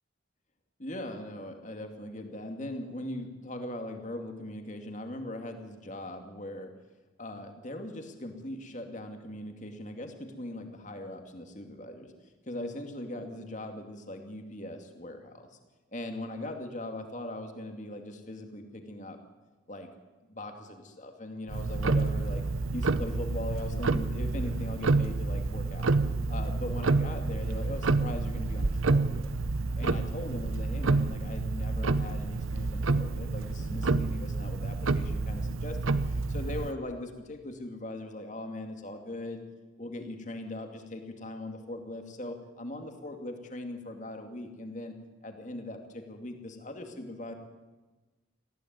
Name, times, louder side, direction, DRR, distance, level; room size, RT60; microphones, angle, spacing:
voice 1, 0.8-6.7 7.2-12.1 12.4-15.6 15.9-19.2 19.7-19.9 20.3-22.4 22.7-25.9 26.3-29.2 29.8-39.4 39.8-44.9 45.2-47.3, left 1 dB, 35° left, 5 dB, 2.4 m, -40 dB
Tick-tock, 21.5-36.7, right 3 dB, 85° right, 0.8 m, -29 dB
19.0 x 15.5 x 9.5 m, 1.2 s
head